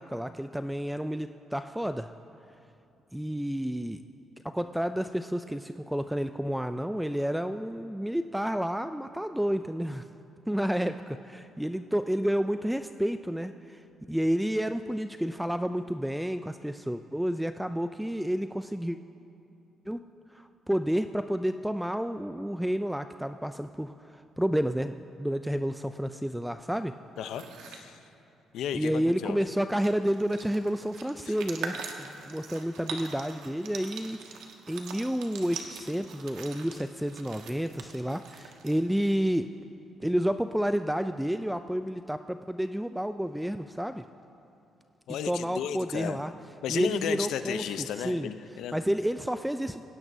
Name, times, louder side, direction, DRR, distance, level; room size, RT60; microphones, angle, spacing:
voice 1, 0.0-2.1 3.1-4.0 4.4-10.0 10.5-13.8 14.1-19.0 19.9-20.0 20.3-26.9 28.7-39.5 40.0-44.0 45.2-46.3 46.7-48.3 48.7-49.8, equal, 5° right, 9 dB, 0.3 m, -30 dB
voice 2, 27.2-28.0 28.5-29.4 31.3-31.4 45.1-46.2 46.6-48.8, left 9 dB, 80° left, 10 dB, 0.6 m, -34 dB
sound 1, 27.2-27.8 29.3-29.4 29.6-39.1, right 6 dB, 85° right, 1.2 m, -43 dB
18.0 x 16.5 x 2.7 m, 2.9 s
cardioid pair, 90°, 0 cm